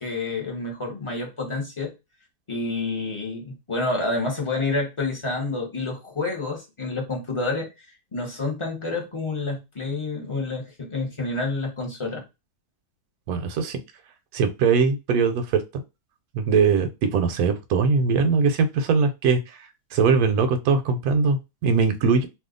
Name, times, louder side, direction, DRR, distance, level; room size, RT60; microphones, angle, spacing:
voice 1, 0.0-1.9 2.5-7.9 8.1-12.2, left 3 dB, 25° left, 0.7 m, -28 dB
voice 2, 13.3-13.8 14.3-15.6 16.3-19.4 19.9-22.3, right 5 dB, 70° right, 1.0 m, -21 dB
2.8 x 2.3 x 3.7 m
omnidirectional pair, 1.8 m